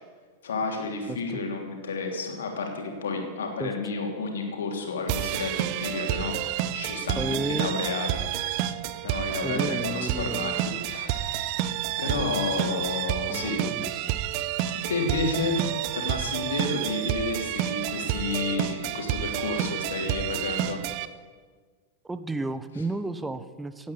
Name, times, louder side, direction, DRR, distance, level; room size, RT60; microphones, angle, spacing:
voice 1, 0.4-8.2 9.0-11.6 12.0-13.7 14.7-20.8, left 4 dB, 65° left, 2 dB, 3.1 m, -31 dB
voice 2, 1.1-1.4 3.6-3.7 7.2-7.7 9.4-10.5 12.0-12.8 13.3-14.2 22.0-23.9, right 2 dB, 10° right, 13 dB, 0.9 m, -33 dB
sound 1, 5.1-21.1, right 12 dB, 45° right, 0.8 m, -29 dB
16.5 x 9.5 x 8.6 m, 1.5 s
figure-of-eight pair, 90°, 0 cm